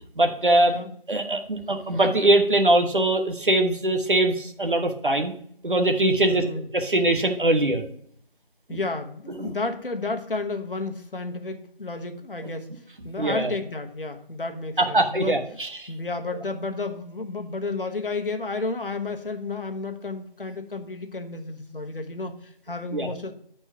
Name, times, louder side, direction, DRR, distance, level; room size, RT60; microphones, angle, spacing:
voice 1, 0.2-0.8 1.1-5.3 5.6-6.4 6.7-7.8 8.7-8.8 9.4-9.5 13.2-13.5 14.8-15.9 22.9-23.1, right 1 dB, 60° right, 5 dB, 1.0 m, -22 dB
voice 2, 6.2-6.7 8.7-12.7 13.0-15.6 15.9-23.3, left 3 dB, 65° left, 7 dB, 1.1 m, -32 dB
7.4 x 4.4 x 4.6 m, 0.63 s
figure-of-eight pair, 175°, 29 cm